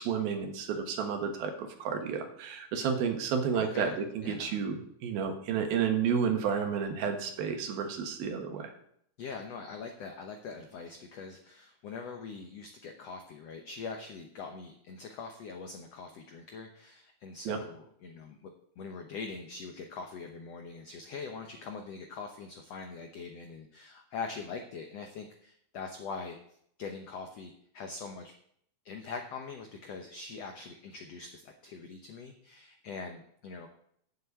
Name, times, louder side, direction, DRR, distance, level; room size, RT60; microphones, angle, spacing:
voice 1, 0.0-3.9 4.2-8.7 17.5-17.6, right 7 dB, 75° right, 5 dB, 3.2 m, -31 dB
voice 2, 3.5-4.6 9.2-26.4 26.8-28.3 28.8-33.7, left 4 dB, 80° left, 4 dB, 1.4 m, -43 dB
8.5 x 7.6 x 8.3 m, 0.69 s
omnidirectional pair, 4.4 m